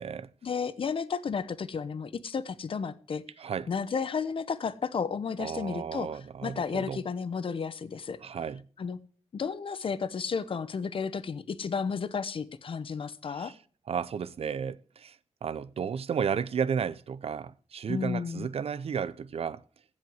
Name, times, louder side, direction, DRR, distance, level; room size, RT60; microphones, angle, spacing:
voice 1, 0.4-3.2 3.7-8.2 8.8-9.0 9.3-13.5 17.9-18.5, left 5 dB, 50° left, 0.9 m, -32 dB
voice 2, 3.4-3.7 5.4-7.0 8.2-8.7 13.4-13.6 13.9-15.2 15.4-19.6, right 7 dB, 65° right, 0.7 m, -33 dB
15.5 x 5.4 x 7.8 m
wide cardioid pair, 120°, 11 cm